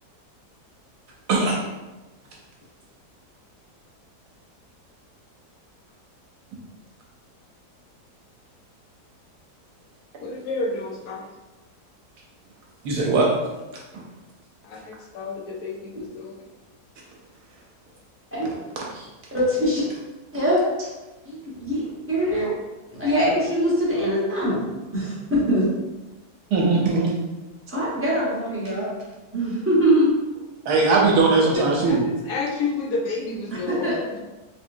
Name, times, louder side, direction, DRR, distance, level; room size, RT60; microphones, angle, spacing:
voice 1, 10.2-11.3 14.6-16.4 31.3-34.2, left 3 dB, 70° left, -2 dB, 1.2 m, -30 dB
voice 2, 12.8-13.3 13.9-14.0 18.9-19.1 26.5-27.1 30.7-32.0, right 3 dB, 75° right, -2 dB, 1.1 m, -19 dB
voice 3, 19.3-19.8 20.3-20.6 21.2-22.5 22.9-24.7 24.9-25.6 27.7-28.9 29.3-30.1 33.7-33.9, equal, 10° right, -8 dB, 0.7 m, -22 dB
3.5 x 2.8 x 2.5 m, 1.1 s
omnidirectional pair, 1.8 m